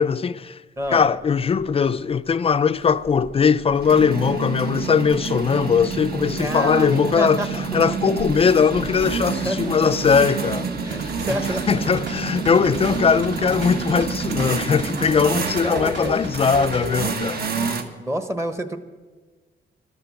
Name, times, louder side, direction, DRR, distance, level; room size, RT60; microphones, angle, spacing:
voice 1, 0.0-0.6 0.9-7.4 7.7-10.7 11.7-17.4, left 6 dB, 30° left, 0.4 m, -20 dB
voice 2, 0.8-1.1 6.4-7.5 7.9-8.0 9.4-9.7 10.8-11.8 15.6-16.1 18.0-18.8, equal, 15° right, 1.0 m, -28 dB
sound 1, 0.9-1.0 1.4-1.6 2.9-17.8, right 5 dB, 55° right, 1.3 m, -28 dB
sound 2, 10.9-17.1, right 1 dB, 80° right, 1.8 m, -35 dB
13.5 x 12.0 x 7.1 m
wide cardioid pair, 155°, 19 cm